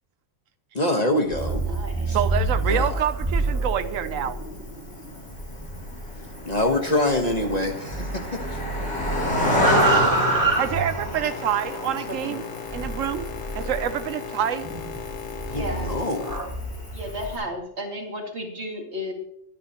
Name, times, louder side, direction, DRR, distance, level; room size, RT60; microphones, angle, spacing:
voice 1, 0.7-1.6 2.1-2.2 2.6-3.0 6.4-8.6 15.5-16.4, left 1 dB, 35° left, 4 dB, 1.2 m, -25 dB
sound 1, 1.2-7.6 7.9-11.3 12.7-14.0 14.6-17.2, right 2 dB, 15° right, 1.6 m, -28 dB
Cricket, 1.4-17.4, left 1 dB, 65° left, 4.6 m, -31 dB
voice 2, 1.6-2.2 11.9-12.4 13.6-13.8 15.5-16.0 16.9-19.1, equal, 55° right, 1 dB, 2.6 m, -34 dB
voice 3, 2.1-4.4 10.6-12.4 12.7-13.3 13.5-14.7, right 9 dB, 85° right, 11 dB, 1.1 m, -27 dB
Boat Water vehicle, 11.2-17.6, left 8 dB, 85° left, 1.3 m, -38 dB
22.5 x 10.0 x 2.9 m, 0.73 s
omnidirectional pair, 1.3 m